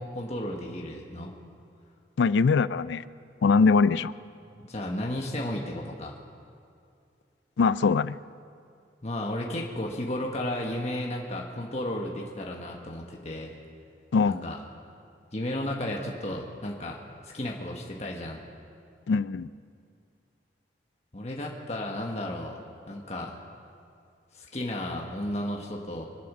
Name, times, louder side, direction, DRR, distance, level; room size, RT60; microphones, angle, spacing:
voice 1, 0.0-1.3 4.5-6.2 9.0-13.5 14.3-14.6 15.3-18.4 21.1-22.6 22.9-23.4 24.3-26.0, left 1 dB, 35° left, 0 dB, 1.3 m, -33 dB
voice 2, 2.2-3.0 3.4-4.1 7.6-8.2 14.1-14.4 19.1-19.5, left 4 dB, 85° left, 17 dB, 0.4 m, -22 dB
25.0 x 8.6 x 6.2 m, 2.4 s
head